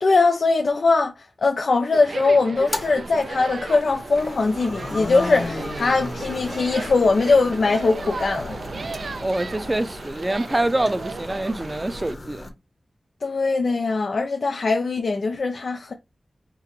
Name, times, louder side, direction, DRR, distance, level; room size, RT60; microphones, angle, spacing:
voice 1, 0.0-1.1 1.4-8.6 13.2-15.9, left 3 dB, 80° left, 0.6 m, -21 dB
sound 1, 1.9-12.1, right 4 dB, 75° right, 0.4 m, -35 dB
sound 2, 2.6-12.5, left 2 dB, 55° left, 1.4 m, -36 dB
voice 2, 9.2-12.5, right 1 dB, 25° right, 0.6 m, -25 dB
3.8 x 2.7 x 4.7 m
wide cardioid pair, 65°, 0 cm